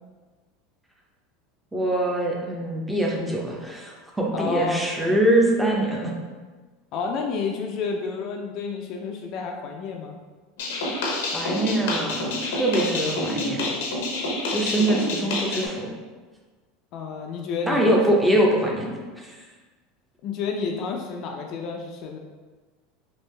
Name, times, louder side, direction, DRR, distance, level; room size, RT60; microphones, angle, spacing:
voice 1, 1.7-6.1 11.3-13.6 14.5-15.9 17.7-19.4, right 1 dB, 5° right, -2 dB, 0.6 m, -23 dB
voice 2, 4.3-4.8 6.9-10.2 14.8-14.9 16.9-18.0 20.2-22.2, left 5 dB, 50° left, 1 dB, 0.4 m, -30 dB
sound 1, 10.6-15.7, left 2 dB, 85° left, 0.7 m, -28 dB
3.2 x 2.5 x 3.2 m, 1.3 s
supercardioid pair, 125°, 0 cm